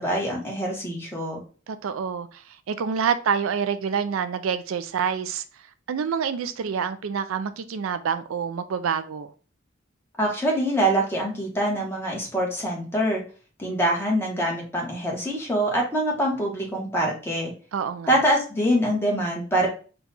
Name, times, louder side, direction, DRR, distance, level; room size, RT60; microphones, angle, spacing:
voice 1, 0.0-1.4 10.2-13.2 13.6-17.5 18.1-19.7, right 1 dB, 10° left, 1.2 m, -24 dB
voice 2, 1.7-5.4 5.9-9.3 17.7-18.1, right 6 dB, 85° right, 0.4 m, -27 dB
3.9 x 2.3 x 4.1 m
head